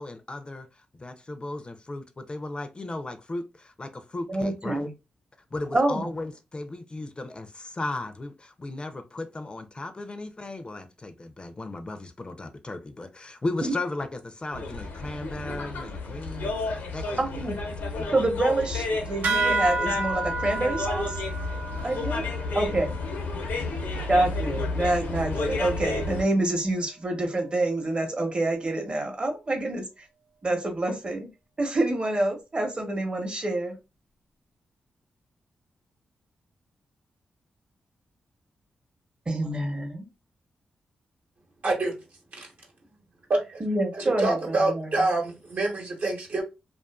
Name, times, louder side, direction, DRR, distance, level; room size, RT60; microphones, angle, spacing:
voice 1, 0.0-4.9 5.5-17.5 18.0-18.2, left 2 dB, 30° left, 0.4 m, -36 dB
voice 2, 4.3-4.9 5.7-6.1 13.6-13.7 17.2-17.6 18.1-21.2 21.8-22.2 22.5-23.0 24.1-30.0 30.4-31.3 31.6-33.8 39.3-40.1 43.6-44.9, right 2 dB, 35° right, 0.8 m, -27 dB
sound 1, 14.5-26.2, left 3 dB, 85° left, 0.6 m, -31 dB
sound 2, 19.2-24.2, right 2 dB, 80° right, 0.5 m, -31 dB
voice 3, 41.6-41.9 42.3-42.5 43.3-43.6 43.9-46.4, right 2 dB, 65° right, 0.9 m, -26 dB
2.4 x 2.4 x 2.2 m
cardioid pair, 55°, 3 cm